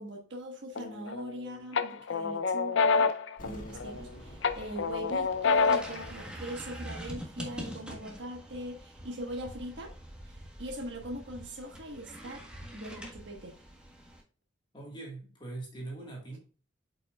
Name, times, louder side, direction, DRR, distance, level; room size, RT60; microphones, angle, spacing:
voice 1, 0.0-3.1 3.4-9.9 10.2-12.5 12.7-13.6, equal, 65° right, 1 dB, 1.4 m, -41 dB
sound 1, 0.8-1.3 1.8-4.0 4.4-6.0, left 5 dB, 75° left, 0.5 m, -27 dB
sound 2, 3.4-6.3 6.5-6.6, equal, 45° left, 2.0 m, -50 dB
sound 3, 3.7-14.2, equal, 5° right, 1.5 m, -45 dB
voice 2, 14.7-16.4, right 2 dB, 25° left, -2 dB, 1.6 m, -41 dB
8.1 x 5.6 x 2.3 m, 0.38 s
head